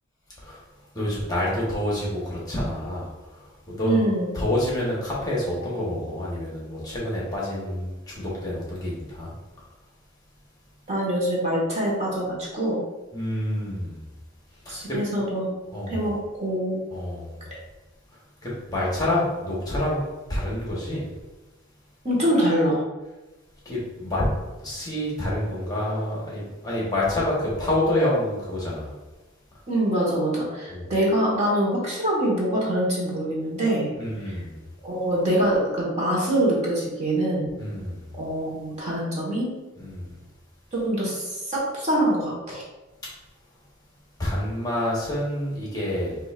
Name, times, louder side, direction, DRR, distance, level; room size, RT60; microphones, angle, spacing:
voice 1, 0.9-3.1 3.7-4.0 4.3-9.3 13.1-14.0 14.7-14.8 15.7-16.0 16.9-17.3 18.4-20.0 20.3-21.0 23.6-24.2 24.6-28.9 30.7-30.9 34.0-34.5 37.6-38.0 39.8-40.1 44.2-46.2, left 1 dB, 20° left, -6 dB, 1.1 m, -27 dB
voice 2, 3.8-4.3 10.9-12.8 14.7-15.5 15.9-16.8 22.0-22.8 29.7-33.9 34.3-34.4 34.8-37.5 38.1-39.6 40.7-42.6, right 1 dB, 35° right, -4 dB, 1.4 m, -24 dB
7.7 x 2.7 x 2.5 m, 1.1 s
head